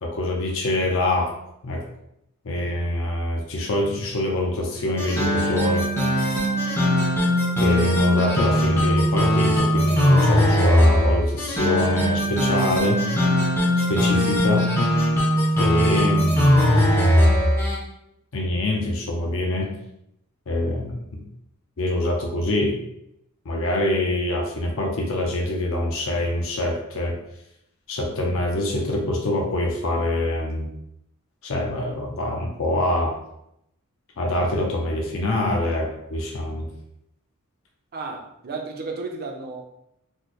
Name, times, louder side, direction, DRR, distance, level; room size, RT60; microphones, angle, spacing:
voice 1, 0.0-1.3 1.6-1.8 2.4-5.9 7.6-13.1 13.9-14.7 15.6-17.0 18.3-19.7 20.5-21.2 21.8-22.8 23.5-27.2 27.9-30.7 31.4-33.2 34.2-36.7, left 1 dB, 65° left, 0 dB, 0.6 m, -25 dB
sound 1, 5.0-17.8, equal, 10° left, 0.5 m, -20 dB
voice 2, 37.9-39.6, right 3 dB, 45° right, 3 dB, 0.5 m, -33 dB
3.1 x 2.0 x 4.0 m, 0.78 s
head